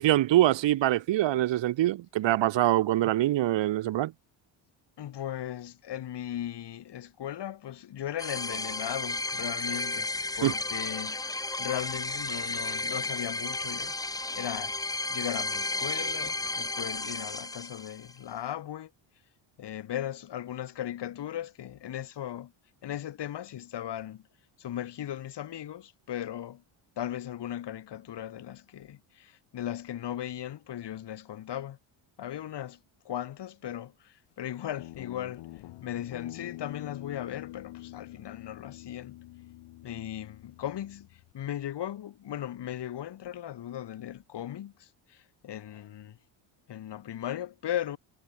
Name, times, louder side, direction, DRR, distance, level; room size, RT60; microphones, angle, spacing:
voice 1, 0.0-4.1 10.4-10.5, right 14 dB, 60° right, 1.5 m, -24 dB
voice 2, 5.0-10.1 10.4-14.8 15.1-18.9 19.6-22.5 22.8-24.2 24.6-26.6 27.0-31.8 32.2-32.8 33.0-35.5 35.8-39.2 39.8-46.2 46.7-48.0, left 11 dB, 55° left, 6.1 m, -37 dB
sound 1, 8.2-18.1, left 2 dB, 5° left, 0.7 m, -33 dB
Guitar, 34.8-41.3, left 17 dB, 90° left, 6.2 m, -46 dB
cardioid pair, 150°, 50 cm